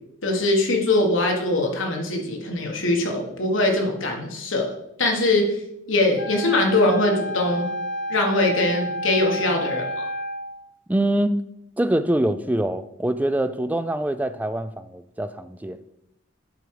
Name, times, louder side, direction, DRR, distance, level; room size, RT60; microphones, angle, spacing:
voice 1, 0.2-4.7 5.0-5.5 5.9-7.7 8.1-10.0, left 2 dB, 75° left, 1.5 m, -22 dB
Wind instrument woodwind instrument, 6.2-10.6, equal, 60° left, 0.8 m, -30 dB
voice 2, 10.9-11.4 11.8-15.8, right 1 dB, 10° right, 0.3 m, -24 dB
8.0 x 4.9 x 4.7 m
head